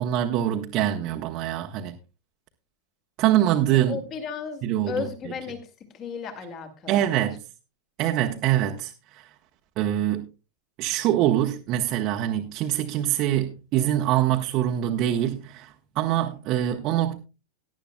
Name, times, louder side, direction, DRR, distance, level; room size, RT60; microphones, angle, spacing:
voice 1, 0.0-1.9 3.2-4.0 4.6-5.1 6.9-7.4 8.0-9.3 9.8-10.2 10.8-17.2, right 12 dB, 40° right, 1.0 m, -24 dB
voice 2, 3.7-5.6 5.9-7.2, left 6 dB, 30° left, 2.3 m, -34 dB
18.0 x 11.0 x 2.3 m
figure-of-eight pair, 90°, 0 cm